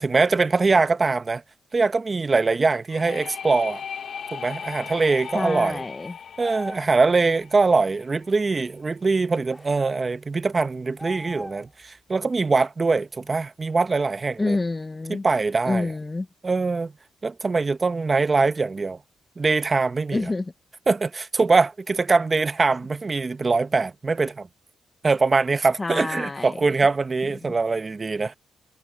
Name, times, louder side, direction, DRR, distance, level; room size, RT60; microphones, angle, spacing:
voice 1, 0.0-1.4 1.7-3.8 4.3-5.8 6.4-14.6 15.1-15.9 16.4-16.9 17.2-19.0 19.4-20.2 20.9-24.5 25.0-28.3, right 4 dB, 30° right, 0.9 m, -22 dB
sound 1, 2.9-8.5, left 7 dB, 60° left, 1.0 m, -38 dB
sound 2, 5.1-5.6 6.4-7.0 9.5-10.0 11.0-11.8, left 1 dB, 5° left, 1.9 m, -39 dB
voice 2, 5.3-6.2 14.4-15.3 15.7-16.3 20.1-20.5 25.8-26.6 27.4-27.5, left 3 dB, 25° left, 0.6 m, -27 dB
cardioid pair, 85°, 0 cm